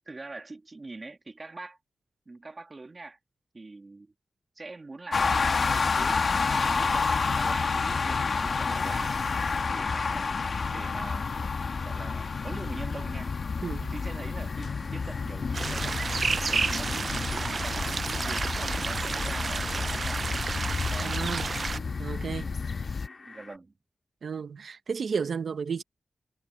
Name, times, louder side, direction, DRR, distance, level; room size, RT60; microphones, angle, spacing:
voice 1, 0.1-1.8 2.3-3.2 3.5-4.1 4.6-6.3 6.6-9.2 9.7-10.3 10.7-13.3 13.9-16.2 16.5-20.3 20.9-21.2 21.7-22.7 23.2-23.7, right 3 dB, 40° right, 2.0 m, -43 dB
sound 1, 5.1-23.1, left 4 dB, 65° left, 1.2 m, -29 dB
voice 2, 13.6-13.9 21.0-21.4 22.0-22.5 24.2-25.8, right 6 dB, 85° right, 0.9 m, -32 dB
sound 2, 14.5-23.6, left 3 dB, 50° left, 3.7 m, -48 dB
sound 3, 15.5-21.8, right 4 dB, 60° right, 0.3 m, -31 dB
wide cardioid pair, 90°, 0 cm